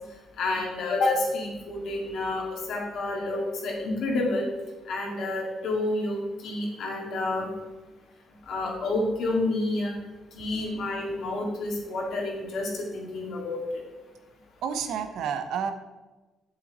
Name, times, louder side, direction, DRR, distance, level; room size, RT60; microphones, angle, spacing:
voice 1, 0.4-4.4 4.9-7.5 8.5-9.9 10.3-13.6, left 2 dB, 75° left, -1 dB, 2.5 m, -29 dB
voice 2, 14.6-15.7, right 7 dB, 80° right, 8 dB, 0.8 m, -30 dB
8.0 x 6.9 x 4.2 m, 1.2 s
cardioid pair, 90°, 0 cm